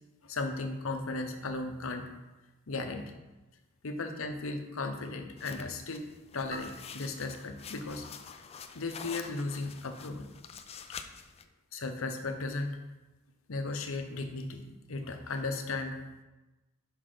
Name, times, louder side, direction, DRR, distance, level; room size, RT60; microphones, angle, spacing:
voice 1, 0.2-2.1 2.7-3.1 3.8-6.0 6.3-8.1 8.3-8.4 8.7-10.3 10.9-11.0 11.7-12.8 13.5-16.0, left 3 dB, 65° left, 6 dB, 0.8 m, -36 dB
sound 1, 5.4-11.4, left 6 dB, 30° left, 0.4 m, -47 dB
sound 2, 6.5-9.0, right 2 dB, 20° right, 0.7 m, -50 dB
5.8 x 5.5 x 5.0 m, 1.1 s
head